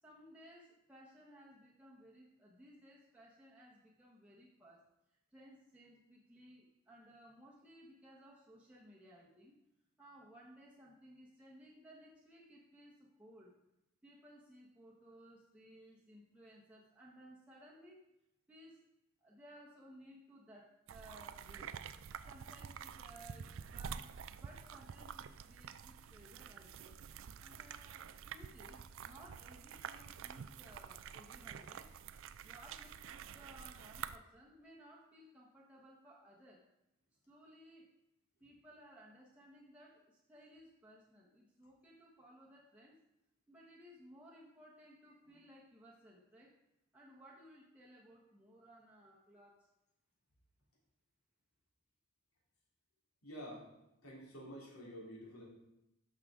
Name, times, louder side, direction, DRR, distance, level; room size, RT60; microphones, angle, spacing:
voice 1, 0.0-4.9 5.3-9.6 10.0-13.5 14.0-18.0 18.5-18.8 19.2-21.8 22.3-27.0 27.4-31.9 32.4-36.6 37.3-37.9 38.4-43.0 43.5-46.5 46.9-49.7, equal, 5° right, -6 dB, 1.0 m, -59 dB
sound 1, 20.9-34.2, right 7 dB, 60° right, 0.4 m, -49 dB
voice 2, 53.2-53.7 54.0-55.4, equal, 85° left, -4 dB, 3.3 m, -49 dB
11.5 x 6.6 x 3.7 m, 0.89 s
head